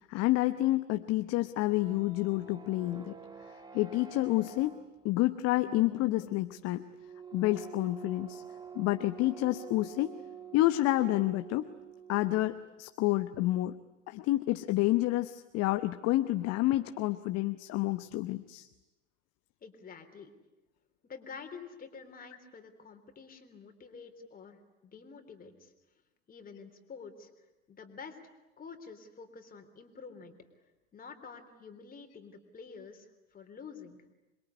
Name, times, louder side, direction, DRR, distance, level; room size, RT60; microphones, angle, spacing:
voice 1, 0.1-3.1 3.7-4.8 5.0-6.9 7.3-8.4 8.7-10.1 10.5-11.7 12.1-13.8 14.1-18.7, left 17 dB, 40° left, 10 dB, 1.0 m, -29 dB
sound 1, 1.5-12.7, right 6 dB, 10° right, 1.8 m, -48 dB
voice 2, 19.6-20.3 21.0-25.7 26.3-27.3 27.7-28.2 28.6-30.3 30.9-34.0, left 5 dB, 20° left, 6 dB, 3.6 m, -48 dB
27.0 x 22.5 x 9.7 m, 1.0 s
hypercardioid pair, 100°, 40 cm